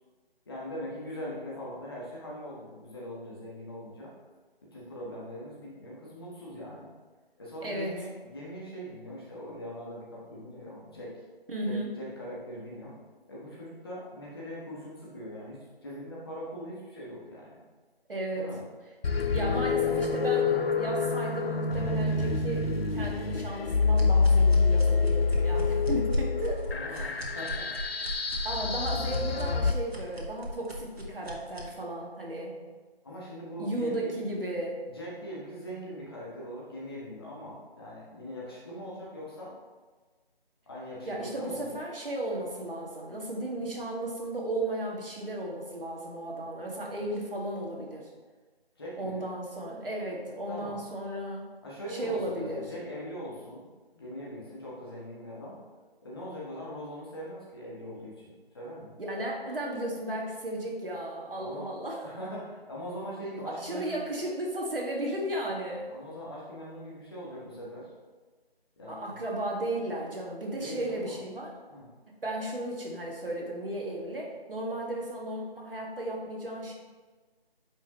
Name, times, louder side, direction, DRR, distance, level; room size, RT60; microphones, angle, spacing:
voice 1, 0.4-4.1 4.7-6.9 7.4-11.1 11.6-12.9 13.3-17.6 18.3-18.6 26.6-28.2 28.7-28.8 33.0-34.1 34.8-39.5 40.7-41.8 48.8-49.2 50.5-50.8 51.6-53.7 53.9-55.6 56.0-58.9 61.4-61.7 62.0-64.0 65.9-67.9 68.8-69.1 70.6-71.2 71.7-71.9, equal, 25° left, -6 dB, 1.3 m, -41 dB
voice 2, 7.6-8.0 11.5-11.9 18.1-18.4 19.3-27.1 28.4-32.6 33.6-34.8 41.1-48.1 49.0-51.5 51.9-52.7 59.0-62.0 63.5-65.8 68.9-71.5 72.2-76.7, right 1 dB, 65° right, -2 dB, 1.8 m, -34 dB
sound 1, 19.0-29.7, left 4 dB, 70° left, 0.7 m, -26 dB
sound 2, 23.9-31.7, equal, 80° right, 1.6 m, -37 dB
8.8 x 5.1 x 3.0 m, 1.3 s
figure-of-eight pair, 165°, 31 cm